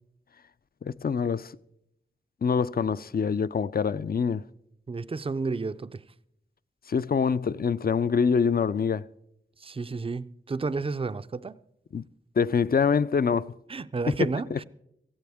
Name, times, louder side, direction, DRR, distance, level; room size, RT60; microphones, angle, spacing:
voice 1, 0.8-1.5 2.4-4.4 6.9-9.1 11.9-12.0 12.4-13.5 14.5-14.6, left 6 dB, 50° left, 0.4 m, -25 dB
voice 2, 4.9-6.0 9.6-11.6 13.7-14.6, right 4 dB, 25° right, 0.4 m, -31 dB
17.5 x 15.0 x 3.5 m
wide cardioid pair, 80°, 21 cm